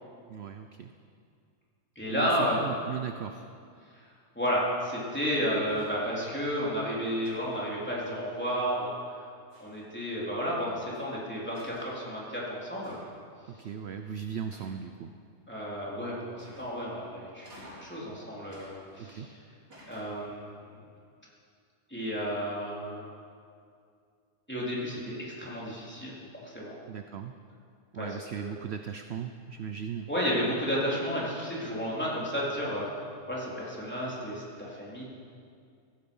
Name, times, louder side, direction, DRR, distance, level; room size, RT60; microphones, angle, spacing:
voice 1, 0.3-0.9 2.1-3.5 13.5-15.1 19.0-19.3 26.9-27.3 27.9-30.1, right 8 dB, 55° right, 7 dB, 0.7 m, -38 dB
voice 2, 2.0-2.6 3.9-4.0 4.4-9.2 9.6-13.0 15.5-17.5 17.8-19.3 19.9-20.8 21.9-23.0 24.5-26.1 26.4-26.8 28.0-28.1 28.4-28.5 30.1-32.9 33.3-35.0, equal, 5° left, -6 dB, 3.7 m, -32 dB
sound 1, 5.6-6.1 7.2-8.3 9.5-10.0 10.9-11.0 11.5-12.0 12.8-13.3 14.5-15.1 16.4-16.9 17.4-18.0 18.5-19.3 19.7-20.4, equal, 85° right, 5.8 m, -53 dB
16.5 x 15.0 x 5.5 m, 2.3 s
omnidirectional pair, 1.7 m